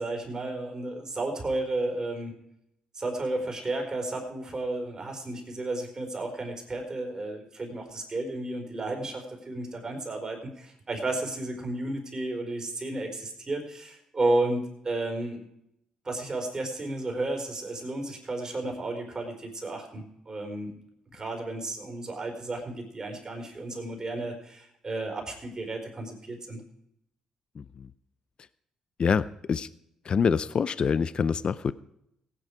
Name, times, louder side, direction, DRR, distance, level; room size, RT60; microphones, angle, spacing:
voice 1, 0.0-2.3 2.9-15.4 16.0-20.7 21.1-26.6, right 2 dB, 35° right, 2 dB, 4.1 m, -32 dB
voice 2, 29.0-29.7 30.1-31.7, left 6 dB, 50° left, 16 dB, 0.5 m, -25 dB
16.5 x 10.0 x 4.9 m, 0.78 s
supercardioid pair, 65°, 2 cm